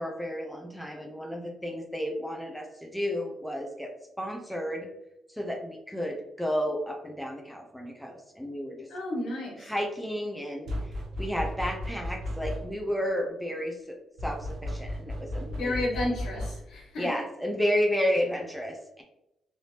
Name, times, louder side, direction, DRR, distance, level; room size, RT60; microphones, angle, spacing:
voice 1, 0.0-3.9 4.2-4.9 5.3-8.9 9.6-14.0 14.2-15.8 17.0-19.0, equal, ahead, 1 dB, 0.5 m, -32 dB
voice 2, 8.9-9.7 15.5-17.1, left 1 dB, 75° left, -2 dB, 1.3 m, -32 dB
sound 1, 10.7-12.9 14.2-16.8, left 1 dB, 70° right, 0.6 m, -35 dB
3.3 x 2.6 x 2.8 m, 0.88 s
cardioid pair, 90°, 0 cm